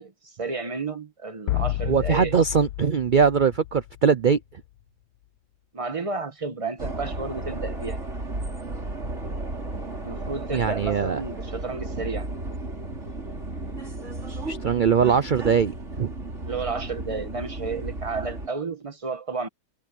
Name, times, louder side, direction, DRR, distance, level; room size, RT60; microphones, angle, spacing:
voice 1, 0.0-2.3 5.7-8.0 10.0-12.3 16.4-19.5, right 4 dB, 20° right, 1.3 m, -32 dB
sound 1, 1.5-4.3, left 15 dB, 90° left, 1.2 m, -30 dB
voice 2, 1.9-4.4 10.5-11.2 14.4-16.1, right 6 dB, 90° right, 0.4 m, -21 dB
sound 2, 6.8-18.5, right 2 dB, 45° right, 4.6 m, -34 dB
omnidirectional pair, 1.7 m